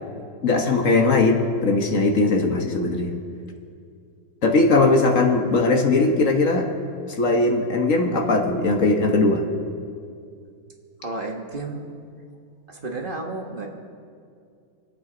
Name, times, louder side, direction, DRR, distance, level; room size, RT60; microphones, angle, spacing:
voice 1, 0.4-3.2 4.4-6.7 7.1-9.4, left 3 dB, 45° left, 3 dB, 1.5 m, -19 dB
voice 2, 11.0-11.9 12.7-13.7, right 2 dB, 30° right, 1 dB, 1.3 m, -32 dB
26.0 x 8.9 x 3.9 m, 2.3 s
omnidirectional pair, 2.0 m